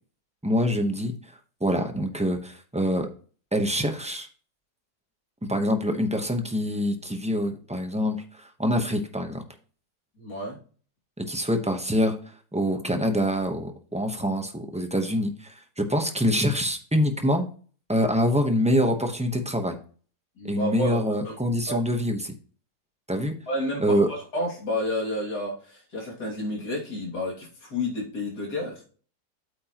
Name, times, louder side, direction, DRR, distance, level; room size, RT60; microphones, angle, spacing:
voice 1, 0.4-1.1 1.6-3.1 3.5-4.3 5.5-9.4 11.2-12.2 12.5-17.5 17.9-19.8 20.5-22.3 23.1-23.3 23.8-24.1, equal, 5° right, 4 dB, 0.6 m, -25 dB
voice 2, 10.2-10.6 20.4-21.4 21.7-21.8 23.5-28.8, left 1 dB, 70° left, -3 dB, 3.1 m, -30 dB
8.6 x 8.3 x 3.0 m, 0.41 s
omnidirectional pair, 1.8 m